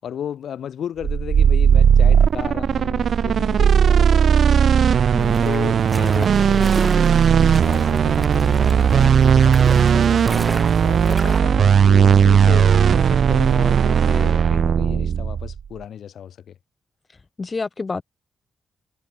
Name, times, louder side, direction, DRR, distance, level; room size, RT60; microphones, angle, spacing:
voice 1, 0.0-4.7 5.4-10.5 10.8-16.6, left 9 dB, 75° left, 4.9 m, -34 dB
sound 1, 1.0-15.6, right 7 dB, 55° right, 0.4 m, -16 dB
voice 2, 5.1-5.4 17.4-18.0, left 4 dB, 25° left, 0.6 m, -28 dB
sound 2, 5.2-11.4, right 2 dB, 15° right, 1.4 m, -35 dB
wide cardioid pair, 170°, 0 cm